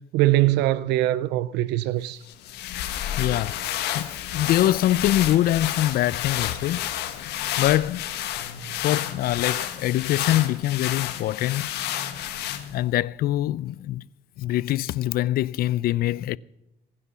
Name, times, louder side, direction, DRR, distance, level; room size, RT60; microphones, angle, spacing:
voice 1, 0.1-2.2, right 15 dB, 85° right, 0.5 m, -22 dB
sound 1, 2.3-12.9, left 11 dB, 80° left, 1.6 m, -30 dB
voice 2, 3.2-8.1 8.8-11.7 12.7-14.1 14.4-16.4, left 14 dB, 65° left, 0.4 m, -24 dB
21.5 x 9.8 x 5.6 m
cardioid pair, 110°, 17 cm